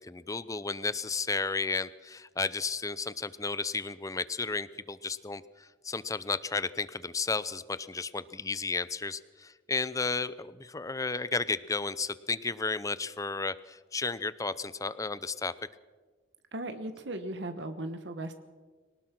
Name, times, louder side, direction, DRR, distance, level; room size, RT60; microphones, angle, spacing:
voice 1, 0.0-15.5, left 4 dB, 15° left, 16 dB, 0.6 m, -33 dB
voice 2, 16.5-18.4, right 1 dB, 60° right, 8 dB, 1.3 m, -37 dB
23.5 x 18.5 x 6.0 m, 1.4 s
head